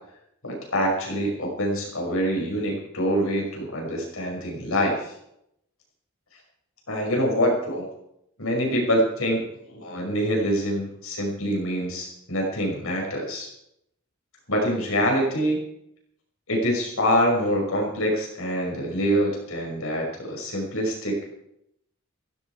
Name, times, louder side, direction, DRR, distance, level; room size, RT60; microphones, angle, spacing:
voice 1, 0.4-5.1 6.9-7.9 8.4-13.5 14.5-15.6 16.5-21.3, equal, 65° left, 0 dB, 5.6 m, -25 dB
16.5 x 15.5 x 4.8 m, 0.79 s
head